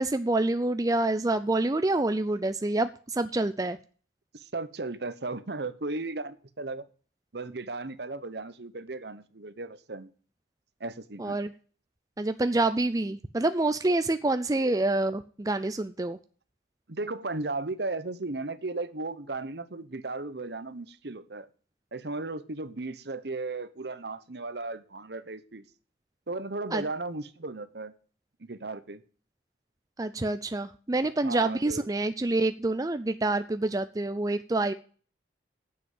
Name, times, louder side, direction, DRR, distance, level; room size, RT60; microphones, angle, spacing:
voice 1, 0.0-3.8 11.2-11.5 12.2-16.2 26.7-26.8 30.0-34.7, right 2 dB, 20° right, 0.5 m, -27 dB
voice 2, 4.3-6.8 7.3-10.1 10.8-11.4 16.9-21.5 21.9-25.6 26.3-27.9 28.4-29.0 31.2-31.9, right 3 dB, 60° right, 1.0 m, -35 dB
9.7 x 7.9 x 7.7 m
head